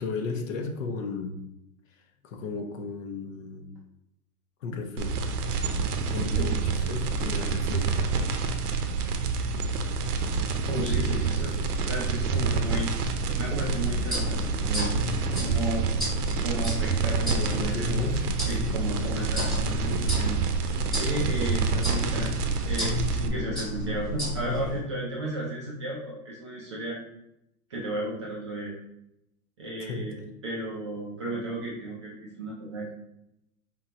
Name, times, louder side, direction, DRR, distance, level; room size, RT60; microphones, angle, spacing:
voice 1, 0.0-1.4 2.2-3.7 4.6-5.2 6.1-8.0 10.9-11.7 17.3-18.6 24.5-24.7 29.8-30.3, left 4 dB, 55° left, 5 dB, 0.9 m, -35 dB
sound 1, 5.0-23.3, right 5 dB, 80° right, 0.8 m, -28 dB
voice 2, 10.7-11.6 11.9-12.9 13.4-15.0 15.4-15.9 16.4-18.1 18.5-22.3 22.6-27.0 27.7-28.7 29.6-30.2 30.4-32.9, right 1 dB, 20° right, -4 dB, 0.4 m, -33 dB
sound 2, 13.2-24.8, left 1 dB, ahead, 0.8 m, -32 dB
4.5 x 3.7 x 2.9 m, 0.83 s
hypercardioid pair, 155°, 46 cm